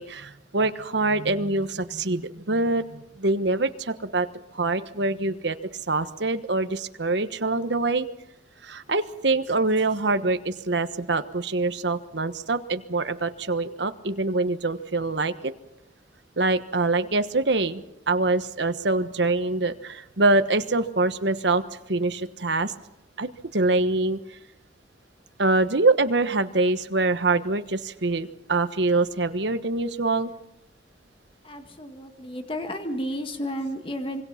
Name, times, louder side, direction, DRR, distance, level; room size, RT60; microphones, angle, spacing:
voice 1, 0.0-4.3 4.5-5.6 5.9-8.1 8.6-15.5 16.4-21.6 21.9-22.7 23.2-24.2 25.4-30.3, right 2 dB, 65° right, 10 dB, 1.3 m, -24 dB
voice 2, 31.4-34.2, equal, 30° left, 6 dB, 1.9 m, -32 dB
26.0 x 23.5 x 5.9 m, 0.87 s
head